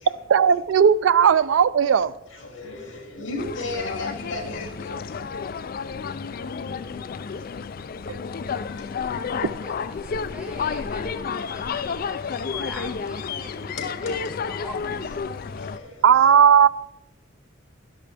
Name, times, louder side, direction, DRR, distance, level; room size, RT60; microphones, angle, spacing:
voice 1, 0.3-2.1 8.1-8.2 16.0-16.7, right 7 dB, 85° right, 0.4 m, -16 dB
voice 2, 2.3-5.2 7.2-7.3 8.7-8.8 10.5-10.6 11.1-11.2 11.5-11.6 13.8-14.3 15.1-16.0, left 2 dB, 75° left, 2.8 m, -35 dB
sound 1, 3.4-15.8, left 5 dB, 50° left, 0.4 m, -31 dB
voice 3, 9.5-15.2, equal, 5° right, 1.7 m, -43 dB
12.5 x 10.5 x 3.4 m
head